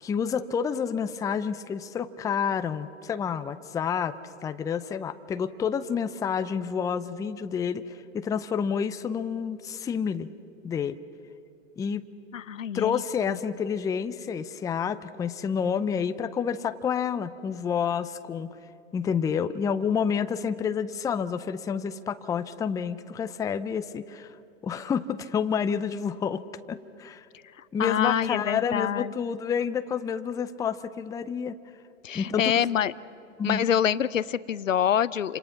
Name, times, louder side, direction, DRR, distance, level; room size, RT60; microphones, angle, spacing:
voice 1, 0.0-4.2 4.4-10.3 10.6-11.0 11.8-12.0 12.7-18.5 18.9-24.3 24.6-26.4 26.7-27.3 27.7-31.6 32.1-32.6 33.4-33.7, left 7 dB, 10° left, 11 dB, 0.5 m, -29 dB
voice 2, 12.3-13.4 27.6-29.1 32.0-32.9 33.4-35.4, left 9 dB, 85° left, 18 dB, 0.7 m, -26 dB
30.0 x 26.5 x 5.9 m, 2.8 s
hypercardioid pair, 110°, 38 cm